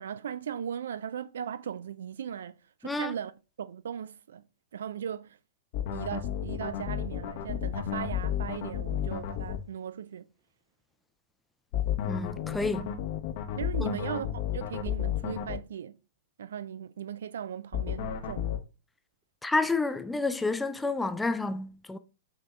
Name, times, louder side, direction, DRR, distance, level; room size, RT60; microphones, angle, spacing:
voice 1, 0.0-2.5 2.8-3.3 3.6-4.4 4.7-5.4 5.9-10.3 13.5-15.9 16.4-18.5, right 8 dB, 70° right, 0.3 m, -38 dB
voice 2, 2.8-3.1 12.0-12.9 13.8-14.0 19.4-22.0, left 3 dB, 5° left, 0.4 m, -30 dB
sound 1, 5.7-9.6 11.7-15.6 17.7-18.6, left 10 dB, 50° left, 0.7 m, -32 dB
7.3 x 2.8 x 2.3 m
figure-of-eight pair, 105°, 0 cm